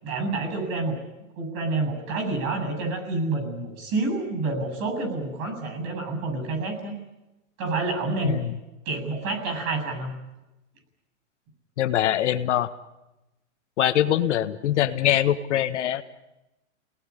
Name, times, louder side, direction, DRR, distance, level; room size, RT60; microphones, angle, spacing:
voice 1, 0.0-1.0 1.4-6.9 7.6-8.3 8.8-10.2, right 3 dB, 35° right, 6 dB, 7.9 m, -28 dB
voice 2, 11.8-12.7 13.8-16.0, left 11 dB, 65° left, 9 dB, 1.6 m, -23 dB
29.0 x 19.0 x 10.0 m, 0.99 s
hypercardioid pair, 155°, 38 cm